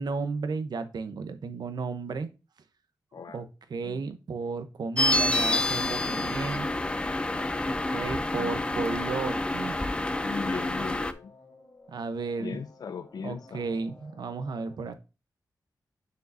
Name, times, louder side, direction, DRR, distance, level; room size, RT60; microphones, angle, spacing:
voice 1, 0.0-2.3 3.3-6.7 7.6-9.7 11.9-12.6 13.2-14.9, right 4 dB, 80° right, 0.9 m, -34 dB
sound 1, 5.0-11.1, left 1 dB, 15° left, 0.5 m, -28 dB
sound 2, 8.7-14.7, left 3 dB, 40° left, 1.8 m, -55 dB
voice 2, 10.2-11.3 12.4-13.7, left 5 dB, 70° left, 0.5 m, -38 dB
6.7 x 6.5 x 2.7 m
wide cardioid pair, 150°, 7 cm